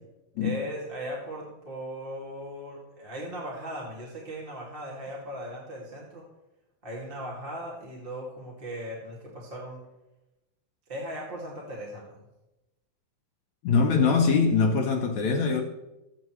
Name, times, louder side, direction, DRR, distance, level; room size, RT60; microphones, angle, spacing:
voice 1, 0.4-6.2 6.8-9.8 10.9-12.2, equal, 20° right, 1.7 m, -38 dB
voice 2, 13.6-15.6, left 5 dB, 70° left, 1.9 m, -23 dB
18.5 x 8.1 x 3.2 m
omnidirectional pair, 4.3 m